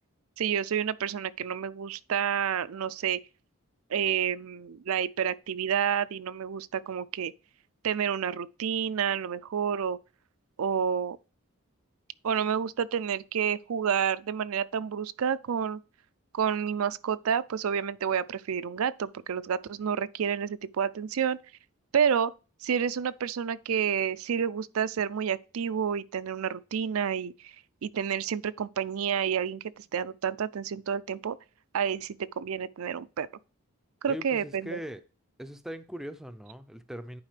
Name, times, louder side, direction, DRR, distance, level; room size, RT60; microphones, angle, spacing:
voice 1, 0.4-3.2 3.9-7.3 7.8-10.0 10.6-11.2 12.2-15.8 16.3-21.4 21.9-22.3 22.6-27.5 27.8-31.4 31.7-33.3 34.0-34.8, right 7 dB, 80° right, 0.4 m, -29 dB
voice 2, 34.1-35.0 35.4-37.2, equal, ahead, 0.5 m, -40 dB
10.5 x 4.8 x 3.3 m
head